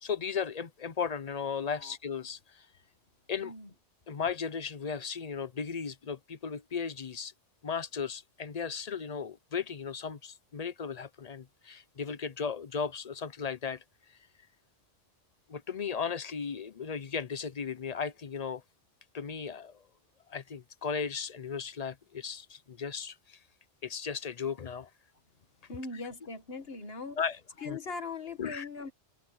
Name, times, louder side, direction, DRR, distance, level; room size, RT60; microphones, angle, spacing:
voice 1, 0.0-2.7 3.3-3.5 4.1-7.3 7.6-13.8 15.5-18.6 19.1-19.8 20.3-23.4 23.8-24.9 27.2-27.4 27.7-27.8 28.4-28.7, left 6 dB, 40° left, 0.7 m, -36 dB
voice 2, 25.7-27.2 27.6-28.9, left 4 dB, 60° left, 2.0 m, -40 dB
omnidirectional pair, 1.2 m